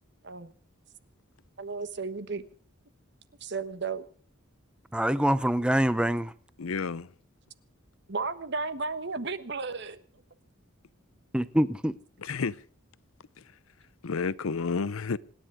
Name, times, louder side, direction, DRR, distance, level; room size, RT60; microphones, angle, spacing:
voice 1, 1.6-2.4 3.4-4.1 8.1-10.0, right 4 dB, 55° right, 1.2 m, -33 dB
voice 2, 4.9-6.3 11.3-12.0, equal, 5° right, 0.7 m, -25 dB
voice 3, 6.6-7.1 12.2-12.6 14.0-15.2, left 4 dB, 85° left, 0.7 m, -30 dB
26.5 x 10.5 x 4.9 m
head